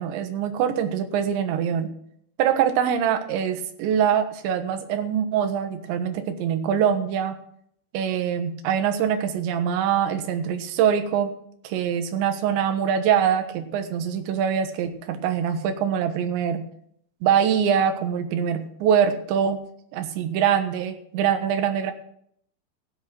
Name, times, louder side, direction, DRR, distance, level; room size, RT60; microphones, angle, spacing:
voice 1, 0.0-1.9 2.4-7.4 7.9-11.3 11.6-16.7 17.2-19.6 19.9-21.9, right 8 dB, 70° right, 7 dB, 3.4 m, -24 dB
15.0 x 8.6 x 6.0 m, 0.66 s
omnidirectional pair, 5.7 m